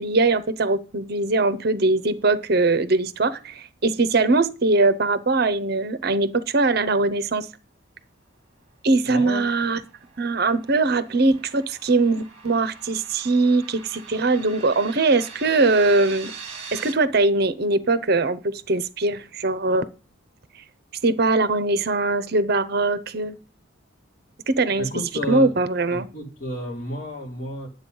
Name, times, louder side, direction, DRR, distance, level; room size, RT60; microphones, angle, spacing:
voice 1, 0.0-7.5 8.8-9.8 10.2-16.3 16.7-19.9 21.0-23.4 24.5-24.9 25.3-26.1, right 3 dB, 55° right, 0.7 m, -21 dB
voice 2, 9.0-9.5 24.8-25.5 25.9-27.7, left 1 dB, 40° left, 3.4 m, -31 dB
sound 1, 9.6-16.9, right 5 dB, 30° right, 2.1 m, -42 dB
10.0 x 7.8 x 5.4 m
head